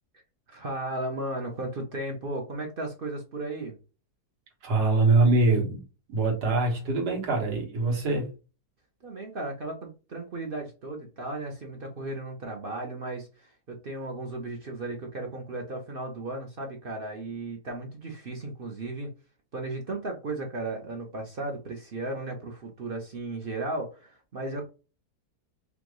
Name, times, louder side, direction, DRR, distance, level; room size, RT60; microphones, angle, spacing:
voice 1, 0.5-3.8 9.0-19.1 19.5-24.6, right 2 dB, 45° right, 0.8 m, -35 dB
voice 2, 4.6-5.8 6.1-8.3, right 3 dB, 80° right, 1.9 m, -23 dB
5.3 x 2.5 x 3.0 m
omnidirectional pair, 1.7 m